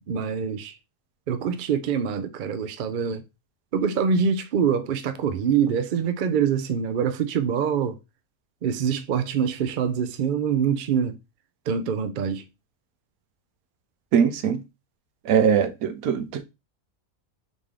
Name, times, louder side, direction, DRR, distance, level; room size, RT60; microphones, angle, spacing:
voice 1, 0.1-0.8 1.3-3.2 3.7-8.0 8.6-11.2 11.7-12.4, right 7 dB, 65° right, 0.5 m, -25 dB
voice 2, 14.1-14.6 15.2-16.4, right 7 dB, 80° right, 1.1 m, -21 dB
3.9 x 3.3 x 3.6 m
omnidirectional pair, 1.5 m